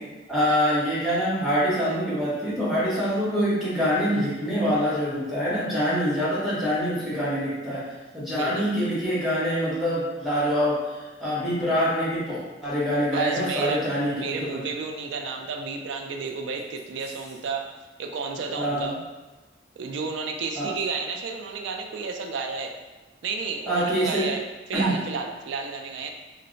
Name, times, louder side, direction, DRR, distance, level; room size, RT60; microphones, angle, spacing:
voice 1, 0.3-7.8 8.1-14.6 18.5-18.9 20.6-20.7 23.7-24.3 24.7-25.0, equal, ahead, -9 dB, 0.8 m, -25 dB
voice 2, 8.3-8.7 13.1-13.9 14.1-17.7 18.0-18.9 19.8-22.7 23.2-24.4 24.7-26.1, right 4 dB, 80° right, 3 dB, 0.3 m, -31 dB
2.1 x 2.0 x 3.7 m, 1.2 s
head